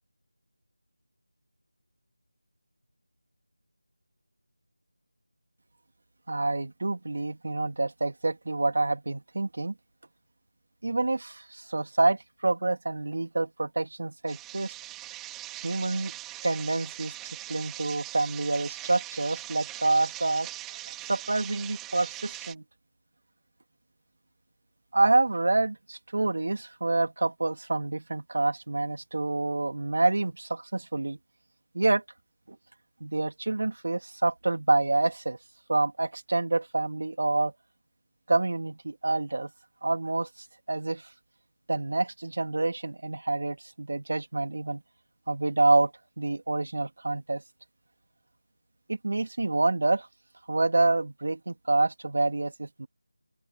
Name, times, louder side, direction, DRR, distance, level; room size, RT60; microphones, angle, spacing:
voice 1, 6.3-9.7 10.8-14.7 15.6-16.1 16.4-17.1 17.5-20.5 21.1-22.6 24.9-31.2 31.7-32.0 32.5-32.6 33.0-35.4 35.7-37.5 38.3-39.5 39.8-40.3 40.7-41.1 41.7-44.8 45.3-45.9 46.2-47.4 48.9-50.1 50.5-52.9, right 2 dB, 55° right, 2.7 m, -27 dB
sound 1, 14.3-22.5, right 16 dB, 5° right, 2.4 m, -41 dB
open air
figure-of-eight pair, 175°, 0 cm